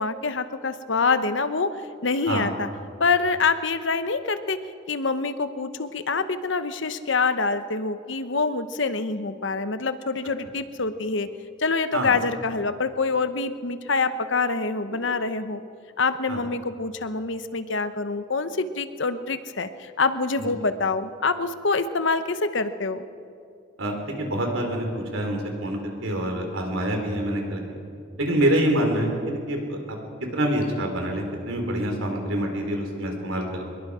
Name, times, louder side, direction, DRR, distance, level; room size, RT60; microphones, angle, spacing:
voice 1, 0.0-1.8 2.0-2.7 3.0-4.6 4.9-11.3 11.6-15.6 16.0-23.0, left 4 dB, 65° left, 11 dB, 0.9 m, -26 dB
voice 2, 23.8-27.6 28.2-29.2 29.5-29.8 30.3-33.7, right 1 dB, 80° right, 2 dB, 4.0 m, -26 dB
24.5 x 21.5 x 5.0 m, 2.5 s
head